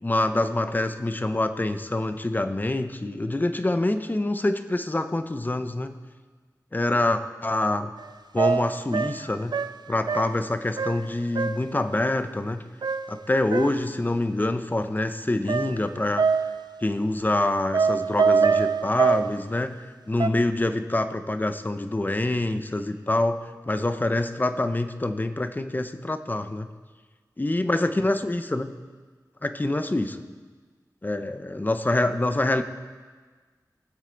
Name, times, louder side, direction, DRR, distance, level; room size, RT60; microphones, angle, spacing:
voice 1, 0.0-5.9 6.7-7.9 8.3-9.5 9.9-12.6 13.1-16.3 16.8-19.8 20.1-23.4 23.7-26.7 27.4-28.7 29.4-30.2 31.0-32.6, left 2 dB, 25° left, 9 dB, 0.8 m, -26 dB
sound 1, 8.0-8.1 8.4-10.5 10.8-11.1 11.4-11.7 12.8-13.9 15.5-16.7 17.7-19.4 20.2-20.3, right 5 dB, 75° right, 0.5 m, -24 dB
21.0 x 8.0 x 4.0 m, 1.4 s
wide cardioid pair, 65°, 7 cm